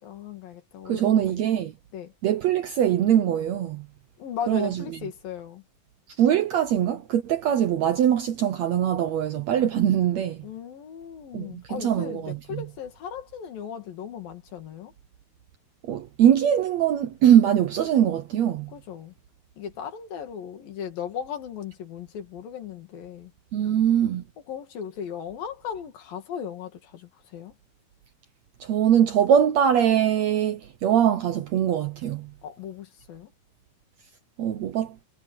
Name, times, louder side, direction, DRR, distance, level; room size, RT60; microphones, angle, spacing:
voice 1, 0.0-1.4 1.9-2.1 4.2-5.6 10.4-14.9 18.7-19.1 19.6-23.3 24.5-27.6 32.4-33.3, left 8 dB, 75° left, 4.0 m, -37 dB
voice 2, 0.9-1.7 2.2-3.9 4.5-4.8 6.2-10.4 11.3-12.6 15.8-18.7 23.5-24.2 28.6-32.3 34.4-35.0, right 10 dB, 70° right, 1.7 m, -22 dB
omnidirectional pair, 4.1 m